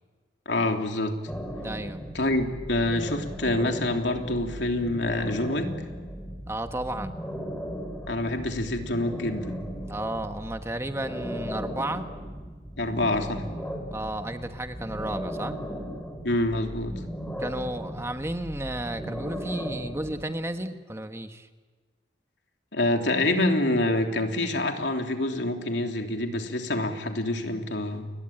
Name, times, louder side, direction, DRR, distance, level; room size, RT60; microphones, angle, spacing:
voice 1, 0.4-1.2 2.1-5.7 8.1-9.5 12.8-13.4 16.2-17.0 22.7-28.1, left 1 dB, 85° left, 4 dB, 3.2 m, -26 dB
sound 1, 1.3-20.2, equal, 5° left, 3.9 m, -37 dB
voice 2, 1.6-2.0 6.5-7.1 9.8-12.1 13.9-15.6 17.4-21.5, right 1 dB, 15° right, 7 dB, 1.4 m, -33 dB
29.5 x 22.0 x 9.0 m, 1.4 s
head